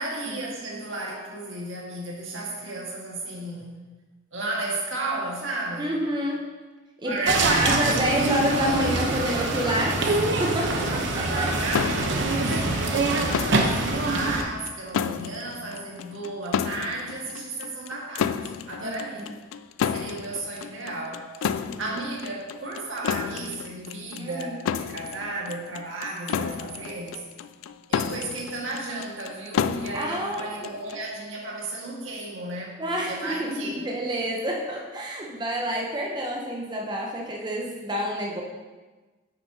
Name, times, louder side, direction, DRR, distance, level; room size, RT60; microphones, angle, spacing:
voice 1, 0.0-3.8 4.3-6.0 7.0-8.3 8.6-8.9 9.3-9.5 10.6-19.3 19.9-27.3 27.9-32.8 33.1-33.9, right 2 dB, 85° right, -2 dB, 1.7 m, -34 dB
voice 2, 5.8-6.5 7.0-10.0 10.4-10.8 11.1-11.5 18.8-19.3 21.7-21.9 24.2-24.6 29.9-30.6 32.8-38.4, equal, 25° right, -1 dB, 0.8 m, -28 dB
sound 1, 7.2-14.4, right 2 dB, 65° right, 0.8 m, -24 dB
sound 2, 11.7-31.1, left 7 dB, 90° left, 0.3 m, -32 dB
9.4 x 6.6 x 2.8 m, 1.3 s
head